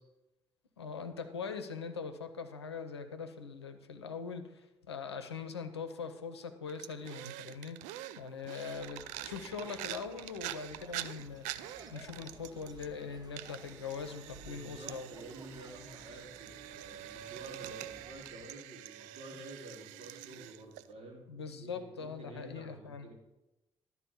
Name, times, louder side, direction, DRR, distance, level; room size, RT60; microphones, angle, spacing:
voice 1, 0.8-7.8 8.2-11.5 11.9-15.1 21.3-23.1, left 5 dB, 85° left, 9 dB, 0.7 m, -42 dB
sound 1, 6.7-13.1 13.4-20.9, right 14 dB, 65° right, 0.5 m, -46 dB
sound 2, 8.6-18.5, right 2 dB, 30° right, 1.6 m, -56 dB
voice 2, 14.5-23.1, right 1 dB, 50° right, -1 dB, 3.2 m, -50 dB
12.0 x 4.3 x 7.2 m, 0.99 s
figure-of-eight pair, 45°, 14 cm